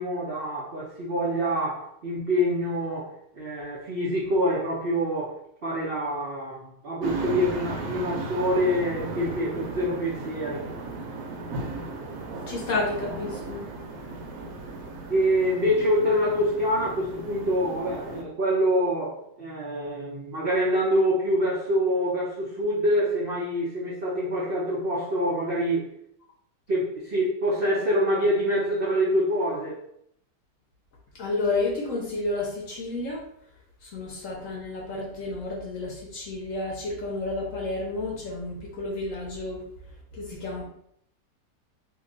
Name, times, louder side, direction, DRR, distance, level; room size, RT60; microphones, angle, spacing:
voice 1, 0.0-5.3 5.6-10.7 15.1-25.9 26.7-29.8, equal, 85° right, -5 dB, 0.5 m, -26 dB
sound 1, 7.0-18.2, right 3 dB, 70° right, 0.9 m, -36 dB
voice 2, 12.5-13.6 31.1-33.2 33.8-39.6 40.1-40.6, left 2 dB, 60° left, -1 dB, 0.9 m, -31 dB
2.8 x 2.2 x 3.7 m, 0.70 s
omnidirectional pair, 1.9 m